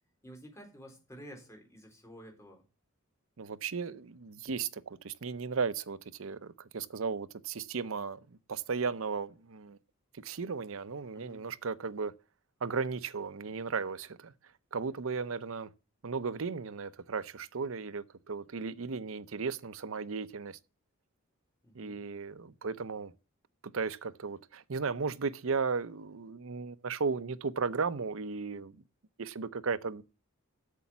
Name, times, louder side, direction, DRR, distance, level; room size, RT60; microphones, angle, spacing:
voice 1, 0.2-2.6 11.1-11.4 21.6-22.0, equal, 15° left, 3.8 m, -51 dB
voice 2, 3.4-9.8 10.2-12.1 12.6-14.3 14.7-15.7 16.0-20.6 21.7-23.1 23.6-28.8 29.2-30.0, right 5 dB, 70° right, 0.7 m, -35 dB
8.3 x 7.0 x 7.3 m
head